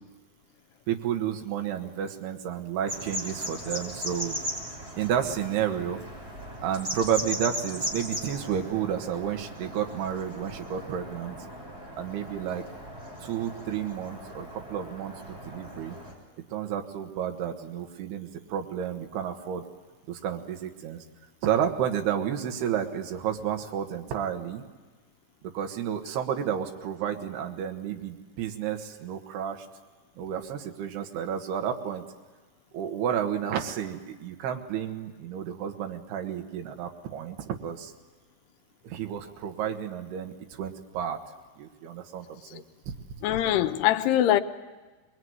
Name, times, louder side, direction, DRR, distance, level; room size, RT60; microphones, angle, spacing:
voice 1, 0.9-4.4 5.0-6.0 6.6-11.4 12.0-12.6 13.2-16.0 16.5-19.7 20.1-21.1 21.4-24.6 25.5-29.7 30.2-32.0 32.7-37.9 38.8-41.2 41.6-42.9, right 9 dB, 80° right, 4 dB, 3.6 m, -31 dB
sound 1, 2.9-16.1, equal, 15° right, 6.1 m, -38 dB
voice 2, 43.2-44.4, left 12 dB, 90° left, 7 dB, 3.1 m, -23 dB
24.5 x 22.0 x 9.6 m, 1.3 s
omnidirectional pair, 4.6 m